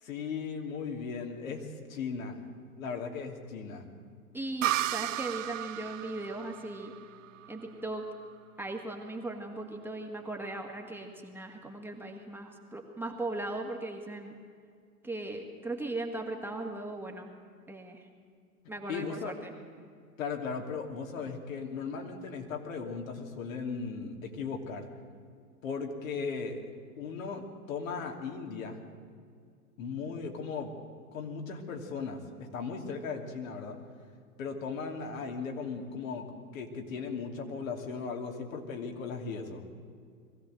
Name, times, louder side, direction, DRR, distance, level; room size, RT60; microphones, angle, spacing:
voice 1, 0.0-2.4 2.8-3.8 18.9-19.4 20.2-24.9 25.6-26.6 27.0-28.8 29.8-30.7 31.1-33.8 34.4-36.3 36.5-39.6, left 5 dB, 60° left, 2 dB, 3.0 m, -37 dB
voice 2, 4.3-6.9 7.5-8.0 8.6-14.4 15.0-17.3 17.7-18.1 18.7-19.5, right 2 dB, 5° right, 1 dB, 1.9 m, -38 dB
sound 1, 4.6-8.2, right 14 dB, 60° right, 0.5 m, -34 dB
22.0 x 15.5 x 7.7 m, 2.2 s
figure-of-eight pair, 105°, 45 cm